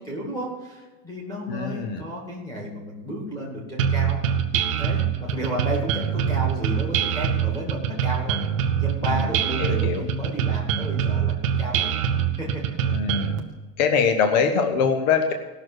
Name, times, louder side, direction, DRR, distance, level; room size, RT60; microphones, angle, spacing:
voice 1, 0.0-4.2 4.8-8.4 8.8-11.9 12.4-12.6, equal, 5° left, -2 dB, 2.2 m, -32 dB
voice 2, 1.5-2.0 9.1-9.3 9.6-10.1 12.8-13.4 13.8-15.3, left 6 dB, 30° left, 7 dB, 0.6 m, -23 dB
sound 1, 3.8-13.4, right 8 dB, 20° right, 0.5 m, -24 dB
17.0 x 6.4 x 6.2 m, 1.3 s
supercardioid pair, 175°, 48 cm